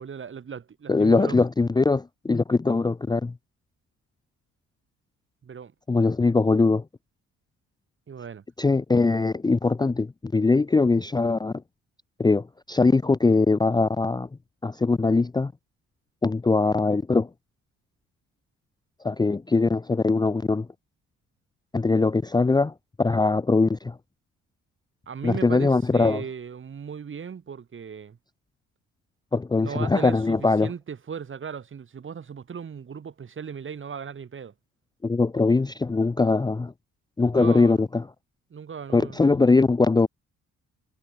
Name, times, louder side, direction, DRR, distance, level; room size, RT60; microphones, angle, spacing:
voice 1, 0.0-1.4 5.4-5.7 8.1-8.4 25.1-28.2 29.6-34.5 37.3-37.8 38.5-39.4, right 7 dB, 40° right, 2.4 m, -37 dB
voice 2, 0.9-3.3 5.9-6.8 8.6-11.6 12.2-14.3 14.6-15.5 16.2-17.3 19.0-20.7 21.7-24.0 25.2-26.2 29.3-30.7 35.0-36.7 37.2-38.0 38.9-40.1, left 3 dB, 15° left, 0.6 m, -21 dB
cardioid pair, 90°, 30 cm